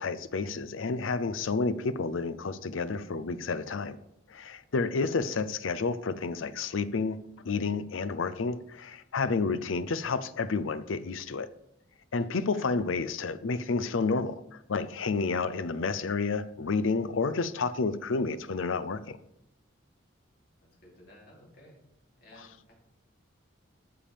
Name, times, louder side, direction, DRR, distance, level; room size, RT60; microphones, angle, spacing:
voice 1, 0.0-4.0 4.3-11.5 12.1-19.2, left 4 dB, 85° left, 14 dB, 0.5 m, -30 dB
voice 2, 20.8-21.8 22.2-22.8, left 1 dB, 50° left, -3 dB, 3.0 m, -55 dB
12.5 x 6.8 x 3.5 m, 0.79 s
head